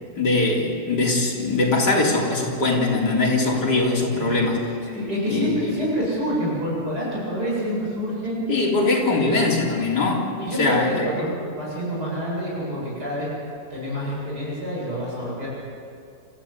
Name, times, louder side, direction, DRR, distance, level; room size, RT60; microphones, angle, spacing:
voice 1, 0.2-4.7 5.3-5.7 8.5-10.3 10.6-11.1, left 2 dB, 70° left, -2 dB, 4.2 m, -21 dB
voice 2, 4.9-8.4 9.1-9.2 10.4-13.3 13.7-15.5, equal, 65° right, -6 dB, 8.6 m, -27 dB
27.5 x 14.5 x 8.3 m, 2.3 s
omnidirectional pair, 1.9 m